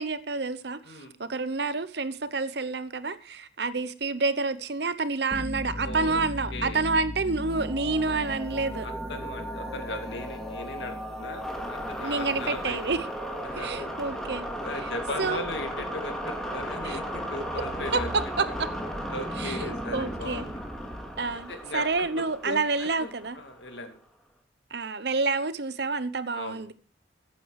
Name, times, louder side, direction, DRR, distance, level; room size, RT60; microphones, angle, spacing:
voice 1, 0.0-8.9 12.0-13.0 13.5-14.5 14.8-14.9 15.2-15.4 16.8-17.0 17.9-18.7 19.4-20.5 21.2-23.4 24.7-26.7, right 3 dB, 60° right, 0.9 m, -29 dB
sound 1, 5.3-23.8, equal, 5° left, 2.3 m, -35 dB
voice 2, 5.8-6.3 6.5-6.8 8.8-12.8 13.4-13.9 14.6-18.1 19.1-20.5 21.5-23.1 23.4-24.0 26.3-26.7, left 2 dB, 70° left, 2.4 m, -38 dB
14.5 x 9.2 x 4.8 m
head